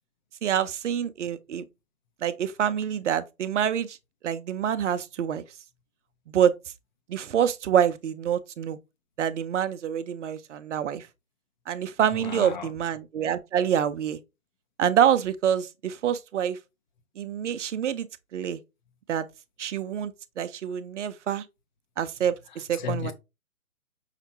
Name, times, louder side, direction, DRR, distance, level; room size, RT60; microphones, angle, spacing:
voice 1, 0.4-1.7 2.2-4.0 4.2-5.4 6.3-6.5 7.1-8.8 9.2-11.1 11.7-14.2 14.8-16.6 17.2-18.1 18.3-18.6 19.1-19.3 19.6-21.4 22.0-23.1, right 9 dB, 55° right, 0.6 m, -26 dB
voice 2, 12.1-12.7 22.8-23.1, left 7 dB, 35° left, 0.6 m, -34 dB
5.7 x 2.2 x 2.8 m
hypercardioid pair, 145°, 43 cm